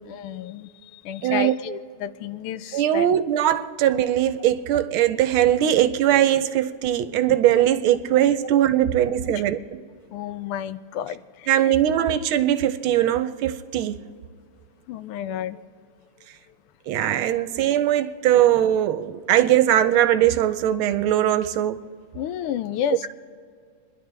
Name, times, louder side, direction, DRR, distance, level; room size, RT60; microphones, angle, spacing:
voice 1, 0.1-3.1 10.1-11.7 14.9-15.6 22.1-23.1, left 9 dB, 85° left, 1.5 m, -31 dB
voice 2, 1.2-1.5 2.7-9.6 11.5-14.0 16.9-21.8, right 11 dB, 75° right, 1.4 m, -20 dB
28.0 x 11.0 x 3.3 m
omnidirectional pair, 2.4 m